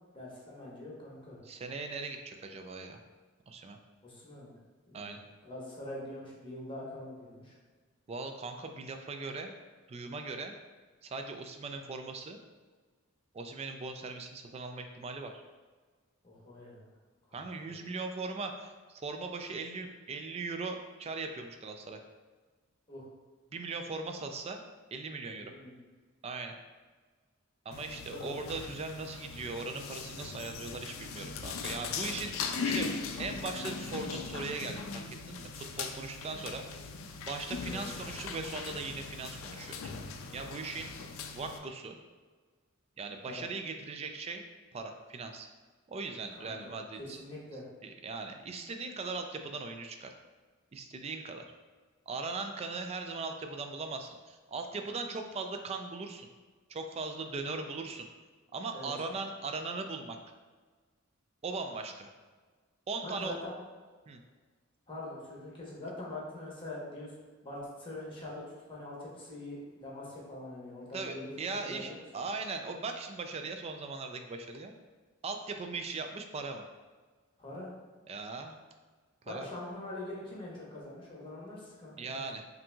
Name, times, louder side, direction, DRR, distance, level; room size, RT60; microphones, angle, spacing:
voice 1, 0.1-1.4 4.0-4.5 4.9-5.2 5.4-7.5 16.2-16.9 17.6-17.7 22.9-23.1 25.5-25.7 27.8-28.3 37.6-37.8 43.2-43.4 46.4-46.7 47.0-47.7 58.7-58.9 63.0-63.5 64.9-67.1 67.4-72.0 77.4-77.7 79.2-82.2, left 1 dB, 25° left, -5 dB, 1.1 m, -44 dB
voice 2, 1.4-3.0 3.5-3.8 4.9-5.2 8.1-9.5 9.9-10.5 11.0-12.4 13.3-15.4 17.3-22.0 23.5-24.6 24.9-25.5 26.2-26.5 27.7-36.6 37.2-39.9 40.3-40.9 41.3-42.0 43.0-44.4 44.7-45.5 45.9-47.2 47.8-50.1 50.7-51.4 52.1-56.3 56.7-58.1 58.5-60.2 61.4-62.1 62.9-63.4 64.1-64.2 70.9-74.7 75.2-76.6 78.1-78.6 79.3-79.5 82.0-82.4, right 3 dB, 30° right, 6 dB, 0.3 m, -39 dB
sound 1, 27.7-41.6, left 5 dB, 80° left, 0.4 m, -39 dB
5.6 x 2.6 x 2.3 m, 1.4 s
head